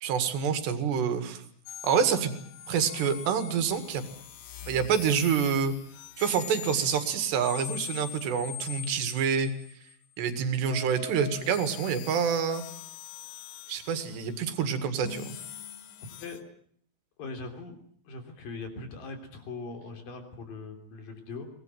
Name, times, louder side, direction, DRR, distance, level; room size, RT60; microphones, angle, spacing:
voice 1, 0.0-1.4 1.8-2.3 2.7-4.0 4.7-5.7 6.2-9.5 10.2-12.6 13.7-15.4, right 7 dB, 90° right, 9 dB, 4.1 m, -27 dB
sound 1, 1.7-10.0 10.7-16.4, left 10 dB, 90° left, 3.7 m, -43 dB
voice 2, 16.1-16.4 17.2-17.8 18.0-21.5, left 3 dB, 55° left, 6 dB, 4.9 m, -40 dB
23.5 x 19.5 x 9.1 m, 0.63 s
omnidirectional pair, 4.7 m